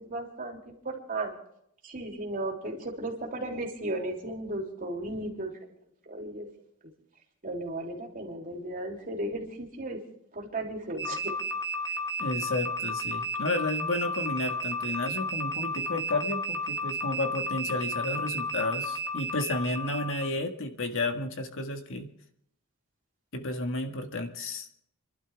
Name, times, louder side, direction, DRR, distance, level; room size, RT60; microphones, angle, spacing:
voice 1, 0.0-1.3 1.8-5.5 6.1-6.5 7.4-10.0 10.3-11.3, right 1 dB, 40° right, 0 dB, 3.2 m, -35 dB
sound 1, 11.0-20.3, equal, 15° left, 1.2 m, -33 dB
voice 2, 12.2-22.1 23.3-24.7, left 2 dB, 60° left, 5 dB, 1.7 m, -32 dB
29.0 x 12.0 x 3.5 m, 0.73 s
head